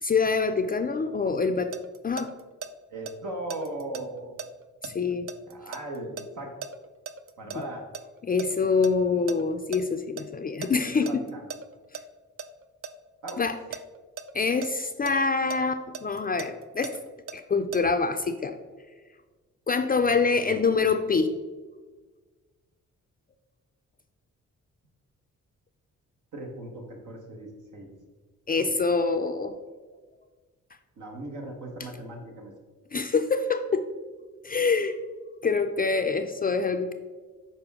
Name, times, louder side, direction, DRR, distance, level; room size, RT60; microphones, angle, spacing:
voice 1, 0.0-1.7 2.0-2.3 4.8-5.3 8.2-11.2 13.4-13.6 14.3-17.0 17.3-18.6 19.7-21.3 28.5-29.5 32.9-33.8 34.4-35.0 35.4-36.9, left 4 dB, 30° left, 8 dB, 0.4 m, -25 dB
sound 1, 1.3-2.7 3.1-7.6 7.9-9.8 10.2-10.3 10.6-12.0 12.4-12.9 13.3-15.1 15.5-17.8, right 6 dB, 50° right, 0.5 m, -38 dB
voice 2, 2.9-4.4 5.5-6.5 7.4-7.8 10.7-11.5 13.2-13.5 20.0-20.9 26.3-27.9 28.5-28.8 31.0-32.5, right 1 dB, 75° right, 1 dB, 1.2 m, -38 dB
6.7 x 4.4 x 3.5 m, 1.4 s
cardioid pair, 65°, 30 cm